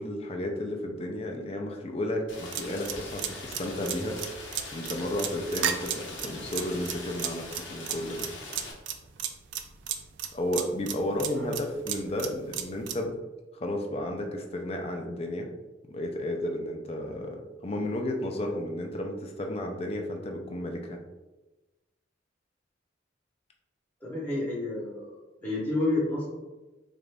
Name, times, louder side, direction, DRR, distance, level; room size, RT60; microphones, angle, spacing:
voice 1, 0.0-8.3 10.3-13.2 13.6-15.5 15.9-21.0, left 1 dB, 30° left, 2 dB, 0.4 m, -33 dB
Rain, 2.3-8.7, left 2 dB, 85° left, 0.9 m, -42 dB
sound 1, 2.5-13.0, right 10 dB, 70° right, 0.4 m, -33 dB
voice 2, 24.0-25.1 25.4-26.3, left 2 dB, 10° left, -8 dB, 0.9 m, -29 dB
3.9 x 2.5 x 3.3 m, 1.1 s
head